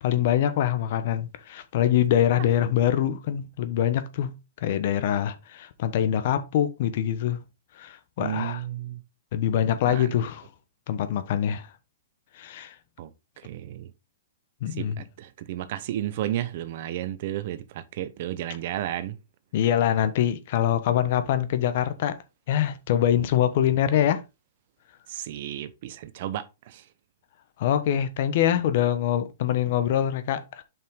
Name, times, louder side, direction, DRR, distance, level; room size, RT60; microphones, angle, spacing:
voice 1, 0.0-4.3 4.6-7.4 7.8-8.6 9.3-10.4 10.9-11.7 12.3-12.7 14.6-15.0 19.5-22.2 22.5-24.2 27.6-30.6, left 10 dB, 50° left, 1.1 m, -24 dB
voice 2, 8.2-9.0 9.8-10.1 13.0-13.9 14.7-19.2 25.1-26.9, right 12 dB, 50° right, 0.9 m, -33 dB
7.3 x 5.5 x 3.8 m
hypercardioid pair, 150°, 0 cm